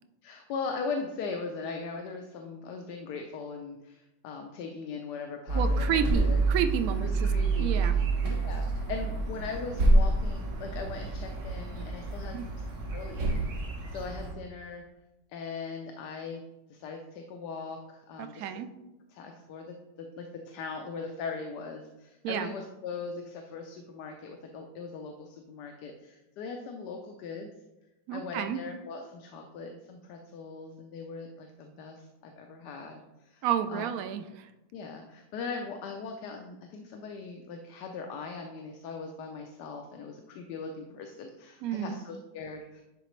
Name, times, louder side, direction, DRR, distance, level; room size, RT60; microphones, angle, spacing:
voice 1, 0.2-6.4 7.0-12.4 12.9-13.3 13.9-14.8 15.3-16.4 16.7-18.6 19.1-27.5 28.1-33.9 34.7-42.8, left 4 dB, 75° left, 3 dB, 1.2 m, -40 dB
sound 1, 5.5-14.3, right 2 dB, 50° right, 1.3 m, -28 dB
voice 2, 5.5-7.3 7.6-8.0 12.3-12.5 18.2-18.7 22.2-22.5 28.1-28.6 33.4-34.5 41.6-42.1, right 8 dB, 70° right, 9 dB, 0.9 m, -31 dB
11.0 x 3.9 x 3.1 m, 0.97 s
omnidirectional pair, 1.9 m